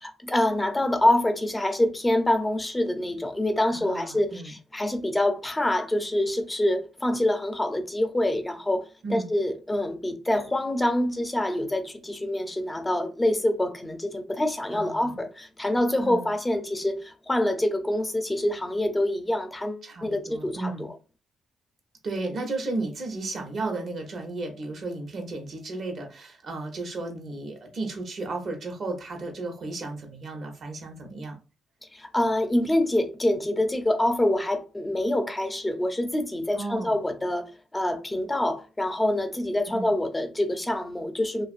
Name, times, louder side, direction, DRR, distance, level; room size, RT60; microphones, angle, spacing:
voice 1, 0.0-20.9 31.9-41.5, left 1 dB, 15° left, 0.5 m, -26 dB
voice 2, 3.7-4.5 9.0-9.3 14.7-15.2 16.0-16.3 19.8-20.9 22.0-31.3 36.5-37.0 39.7-39.9, right 2 dB, 55° right, 0.9 m, -34 dB
2.5 x 2.4 x 2.4 m
cardioid pair, 90°, 0 cm